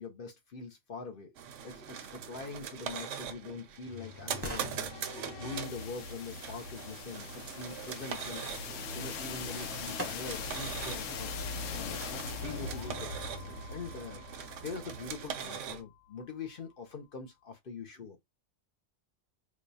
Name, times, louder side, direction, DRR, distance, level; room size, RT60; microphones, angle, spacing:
voice 1, 0.0-1.3 1.6-4.9 5.4-7.3 7.5-8.4 8.9-11.4 11.7-13.1 13.7-18.2, left 4 dB, 50° left, 0.8 m, -43 dB
sound 1, 1.4-15.8, right 8 dB, 75° right, 0.9 m, -42 dB
voice 2, 1.7-2.3 3.4-3.6 5.0-5.7 17.9-18.2, right 2 dB, 30° left, 1.5 m, -55 dB
sound 2, 3.9-15.7, left 5 dB, 85° left, 1.0 m, -41 dB
sound 3, 10.0-10.7 11.2-11.3, right 1 dB, 15° right, 0.8 m, -46 dB
4.8 x 2.3 x 2.7 m
omnidirectional pair, 1.3 m